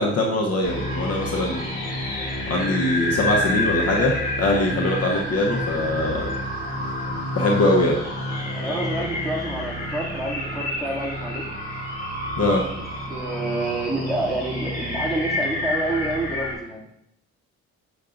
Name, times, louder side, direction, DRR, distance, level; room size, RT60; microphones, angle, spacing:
voice 1, 0.0-1.7 2.5-6.3 7.3-8.0 12.4-12.6, left 1 dB, 55° left, 0 dB, 1.0 m, -22 dB
sound 1, 0.6-16.5, left 1 dB, 25° left, 2.5 m, -28 dB
voice 2, 8.6-11.5 13.1-16.8, right 2 dB, ahead, -6 dB, 2.5 m, -28 dB
6.8 x 6.5 x 2.6 m, 0.76 s
cardioid pair, 90°, 30 cm